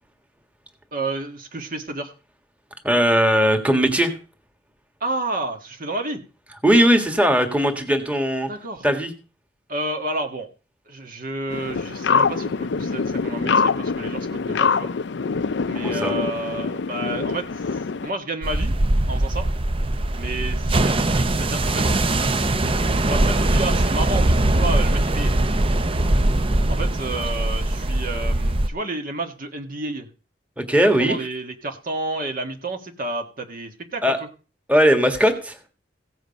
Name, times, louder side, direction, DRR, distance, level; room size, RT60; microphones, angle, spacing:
voice 1, 0.9-2.1 5.0-6.2 8.4-8.9 9.7-10.5 10.9-14.9 15.6-18.7 19.1-19.5 20.2-21.9 22.9-25.3 26.7-30.1 30.8-34.1, right 2 dB, 50° right, 4 dB, 1.6 m, -30 dB
voice 2, 2.8-4.1 6.6-8.5 8.8-9.1 15.7-16.1 30.6-31.2 34.0-34.2 34.7-35.5, equal, 10° right, 5 dB, 1.7 m, -18 dB
sound 1, 11.5-18.1, left 5 dB, 75° left, 0.5 m, -24 dB
sound 2, 18.4-28.7, right 1 dB, 30° right, 0.6 m, -21 dB
16.0 x 7.9 x 5.3 m, 0.35 s
head